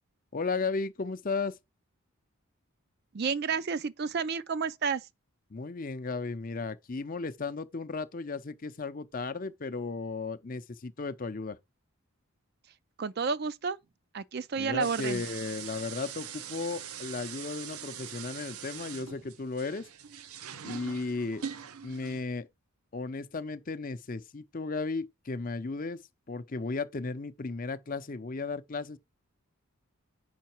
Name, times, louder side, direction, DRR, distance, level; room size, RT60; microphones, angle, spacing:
voice 1, 0.3-1.5 5.5-11.6 14.6-19.9 20.6-21.4 21.8-22.5 22.9-26.0 26.3-29.0, left 3 dB, 40° left, 0.6 m, -35 dB
voice 2, 3.1-5.1 13.0-13.8 14.1-15.2, right 5 dB, 45° right, 0.4 m, -31 dB
sound 1, 14.8-22.2, right 8 dB, 85° right, 0.7 m, -42 dB
8.0 x 5.6 x 4.4 m
head